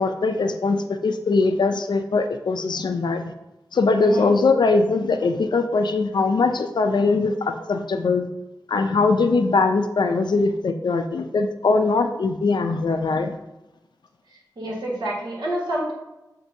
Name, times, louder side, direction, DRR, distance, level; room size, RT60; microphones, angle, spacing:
voice 1, 0.0-3.3 3.7-8.3 8.7-13.3, left 3 dB, 80° left, 7 dB, 0.4 m, -21 dB
voice 2, 4.0-4.3 14.6-15.9, right 1 dB, 80° right, -6 dB, 1.4 m, -28 dB
7.2 x 2.6 x 2.6 m, 1.0 s
wide cardioid pair, 70°, 7 cm